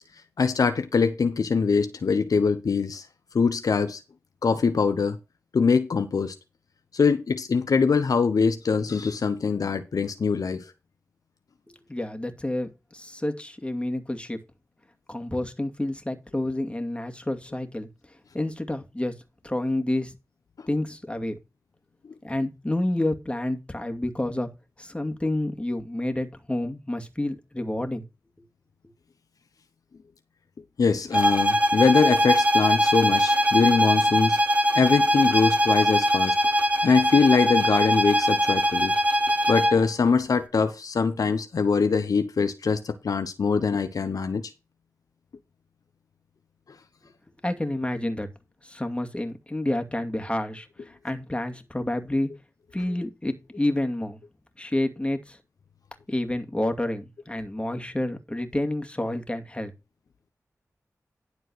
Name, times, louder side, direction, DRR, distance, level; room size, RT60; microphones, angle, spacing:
voice 1, 0.4-3.0 3.3-4.0 4.4-5.2 5.5-6.3 6.9-10.6 30.8-34.4 34.7-36.3 36.8-38.9 39.5-44.4, left 5 dB, 80° left, 0.9 m, -23 dB
voice 2, 11.9-14.4 15.1-17.9 18.3-19.1 19.4-20.1 20.7-21.4 22.2-24.5 24.8-28.0 47.4-48.3 48.6-52.3 52.7-54.2 54.6-55.4 56.1-59.7, left 1 dB, 20° left, 2.4 m, -29 dB
sound 1, 31.1-39.8, equal, 20° right, 1.5 m, -22 dB
11.5 x 4.6 x 6.3 m
cardioid pair, 45°, 6 cm